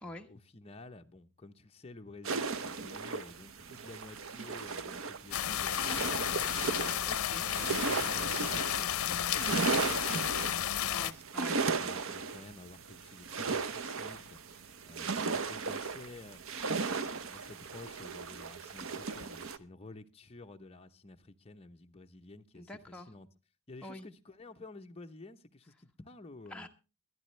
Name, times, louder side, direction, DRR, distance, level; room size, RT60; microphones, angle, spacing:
voice 1, 0.0-6.6 7.9-10.7 11.1-11.2 11.5-23.3 23.7-26.7, left 2 dB, 30° left, 0.8 m, -52 dB
sound 1, 2.2-19.6, right 4 dB, 65° right, 0.8 m, -36 dB
sound 2, 5.3-11.1, left 10 dB, 80° left, 0.6 m, -32 dB
voice 2, 7.0-7.8 10.9-11.6 22.5-23.1 23.8-24.1 26.5-26.7, left 1 dB, 5° left, 1.2 m, -46 dB
22.0 x 10.5 x 3.2 m
head